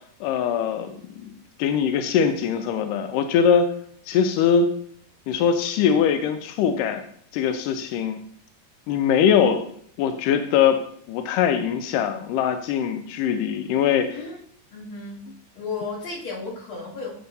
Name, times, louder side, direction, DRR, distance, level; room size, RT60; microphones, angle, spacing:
voice 1, 0.2-3.7 4.1-4.7 5.3-7.0 7.3-8.2 8.9-9.6 10.0-10.8 11.1-14.1, left 7 dB, 80° left, 8 dB, 1.9 m, -22 dB
voice 2, 14.7-15.2 15.6-17.1, left 4 dB, 55° left, -8 dB, 4.4 m, -33 dB
10.0 x 6.6 x 2.7 m, 0.62 s
omnidirectional pair, 4.1 m